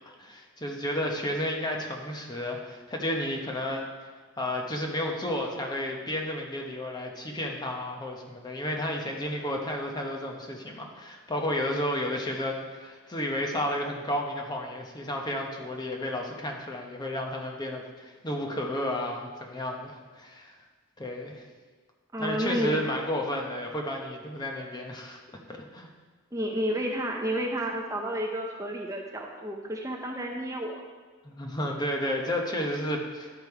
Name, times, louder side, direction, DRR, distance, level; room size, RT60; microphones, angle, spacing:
voice 1, 0.2-3.9 4.4-20.5 21.0-21.4 22.2-25.2 25.5-25.9 31.2-33.3, left 1 dB, 20° left, 1 dB, 0.8 m, -32 dB
voice 2, 22.1-22.9 26.3-30.8, equal, 15° right, 0 dB, 0.6 m, -31 dB
11.0 x 5.1 x 4.7 m, 1.4 s
head